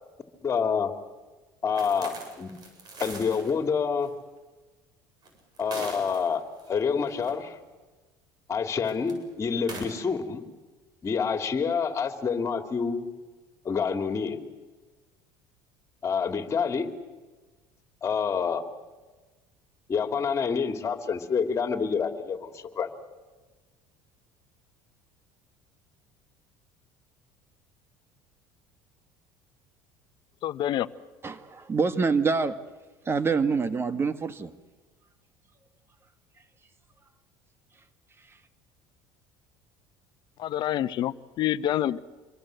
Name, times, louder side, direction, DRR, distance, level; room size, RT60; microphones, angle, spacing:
voice 1, 0.4-0.9 1.6-2.5 3.0-4.1 5.6-7.6 8.5-10.4 11.0-13.0 13.6-14.4 16.0-16.9 18.0-18.6 19.9-22.9, left 6 dB, 30° left, 3.2 m, -27 dB
sound 1, 1.7-3.5 4.0-4.1 5.2-6.7 7.1-7.3 8.8-9.1 9.6-9.8, right 3 dB, 45° right, 7.9 m, -41 dB
voice 2, 30.4-30.9 40.4-42.0, left 12 dB, 55° left, 1.0 m, -27 dB
voice 3, 31.2-32.6 33.0-34.5, right 4 dB, 25° right, 1.5 m, -26 dB
27.0 x 23.0 x 8.0 m
supercardioid pair, 105°, 9 cm